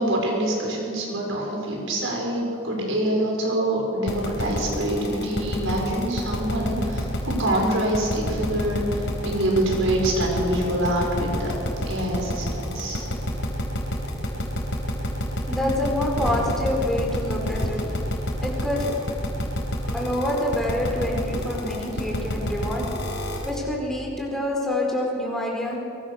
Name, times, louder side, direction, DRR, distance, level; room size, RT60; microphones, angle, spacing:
voice 1, 0.0-11.5 11.9-13.0, right 1 dB, 65° right, 0 dB, 6.4 m, -25 dB
sound 1, 4.1-23.5, equal, 60° left, 4.7 m, -28 dB
voice 2, 15.5-18.0 18.4-18.9 19.9-23.1 23.4-25.8, left 1 dB, ahead, -2 dB, 4.7 m, -27 dB
23.5 x 23.5 x 6.6 m, 2.8 s
head